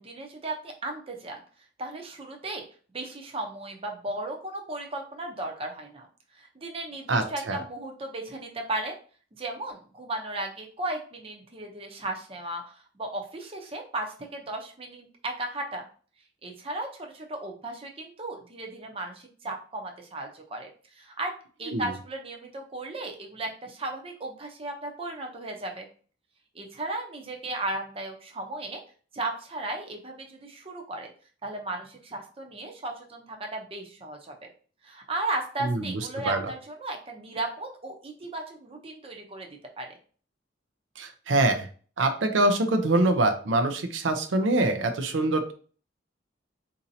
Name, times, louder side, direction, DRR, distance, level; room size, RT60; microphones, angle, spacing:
voice 1, 0.0-1.4 1.8-2.6 2.9-6.1 6.3-9.0 9.3-15.8 16.4-21.3 21.6-25.9 26.5-28.8 29.1-31.1 31.4-34.5 34.8-39.5 39.8-40.0, right 2 dB, 30° right, 2 dB, 0.7 m, -35 dB
voice 2, 7.1-7.6 21.7-21.9 35.6-35.8 36.3-36.4 41.0-41.7 42.0-45.5, right 2 dB, 85° right, 6 dB, 0.6 m, -24 dB
4.1 x 2.7 x 2.7 m, 0.40 s
head